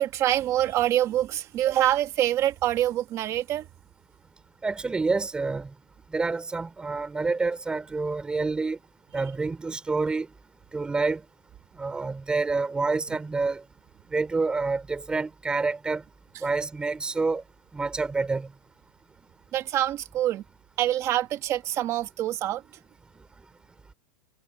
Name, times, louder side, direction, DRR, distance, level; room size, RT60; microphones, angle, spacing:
voice 1, 0.0-3.7 19.5-20.4 20.8-22.6, right 13 dB, 25° right, 1.7 m, -25 dB
voice 2, 4.6-5.7 6.1-8.8 9.1-10.3 10.7-11.2 11.8-13.6 14.1-16.0 16.4-17.4 17.7-18.5 23.2-23.3, right 3 dB, 10° right, 3.8 m, -28 dB
supercardioid pair, 165°, 12 cm